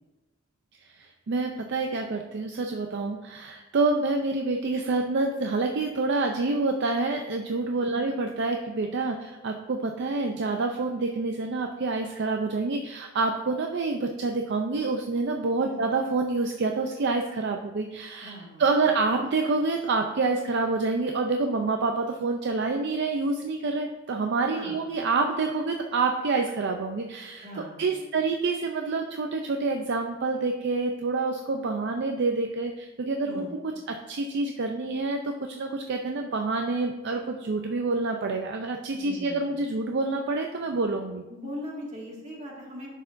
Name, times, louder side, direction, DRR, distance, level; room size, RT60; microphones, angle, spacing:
voice 1, 1.0-18.3 18.6-27.5 27.8-33.4 34.1-41.2, right 3 dB, 55° right, 3 dB, 0.5 m, -27 dB
voice 2, 7.8-8.1 15.6-15.8 18.2-18.6 24.5-24.8 27.4-28.2 33.3-33.5 39.0-39.6 41.3-42.9, equal, 35° right, -3 dB, 2.0 m, -40 dB
10.5 x 6.6 x 2.6 m, 1.1 s
head